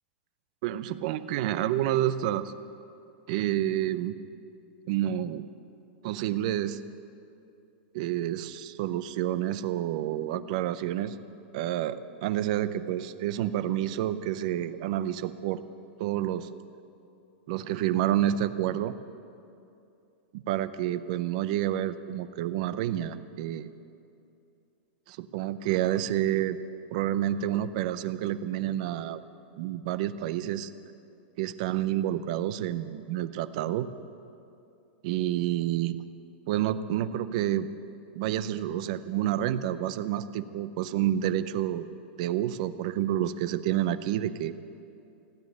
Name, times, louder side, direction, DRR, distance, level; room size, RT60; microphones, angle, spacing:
voice 1, 0.6-2.5 3.3-4.2 4.9-5.4 6.0-6.8 7.9-11.2 11.5-15.6 16.0-16.5 17.5-18.9 20.3-23.7 25.1-26.6 26.9-29.2 29.6-30.7 31.4-33.9 35.0-36.0 36.5-37.7 38.1-41.9 42.2-44.5, right 12 dB, 40° right, 13 dB, 0.5 m, -29 dB
15.5 x 9.4 x 9.2 m, 2.6 s
supercardioid pair, 175°, 6 cm